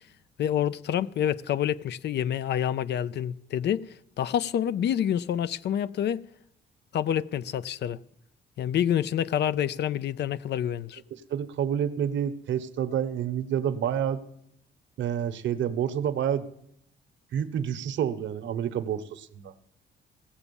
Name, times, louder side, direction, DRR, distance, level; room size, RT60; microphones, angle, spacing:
voice 1, 0.4-3.8 4.2-6.2 6.9-8.0 8.6-11.0, left 10 dB, 60° left, 0.5 m, -27 dB
voice 2, 11.3-14.2 15.0-16.4 17.3-19.5, right 9 dB, 70° right, 0.9 m, -28 dB
16.5 x 7.2 x 7.0 m
cardioid pair, 90°, 20 cm